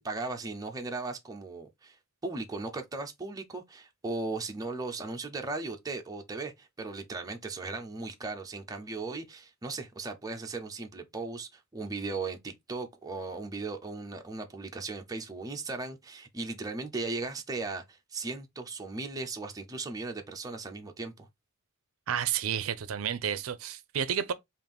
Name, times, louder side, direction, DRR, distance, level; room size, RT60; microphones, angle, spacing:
voice 1, 0.0-2.0 2.2-21.3, right 3 dB, 20° right, 0.5 m, -37 dB
voice 2, 22.1-24.3, right 8 dB, 85° right, 0.4 m, -31 dB
3.7 x 2.5 x 3.4 m
head